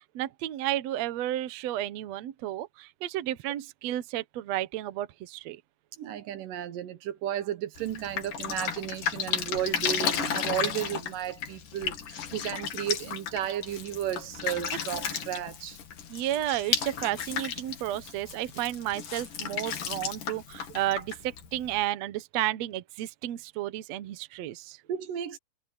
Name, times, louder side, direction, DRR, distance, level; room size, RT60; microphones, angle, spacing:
voice 1, 0.2-5.6 16.1-24.8, right 13 dB, 65° right, 1.9 m, -32 dB
voice 2, 6.0-15.8 24.9-25.4, right 11 dB, 80° right, 2.8 m, -33 dB
Drip, 7.8-21.8, left 8 dB, 75° left, 3.6 m, -34 dB
omnidirectional pair, 3.8 m